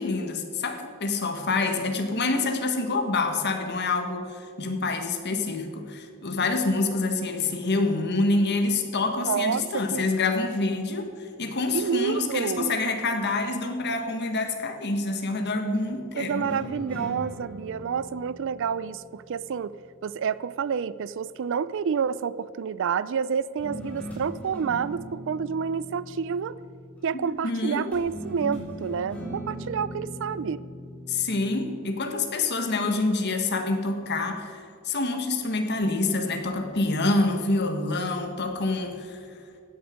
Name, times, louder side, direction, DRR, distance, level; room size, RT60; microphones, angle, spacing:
voice 1, 0.0-16.5 27.1-27.9 31.1-39.2, left 3 dB, 50° left, 6 dB, 1.5 m, -27 dB
voice 2, 9.2-10.0 11.7-12.8 16.2-19.8 20.0-26.6 27.0-30.6, right 6 dB, 60° right, 18 dB, 0.4 m, -29 dB
sound 1, 16.4-19.8 23.6-27.0 27.9-31.8, equal, 5° left, 3.8 m, -39 dB
16.0 x 10.0 x 5.2 m, 2.5 s
head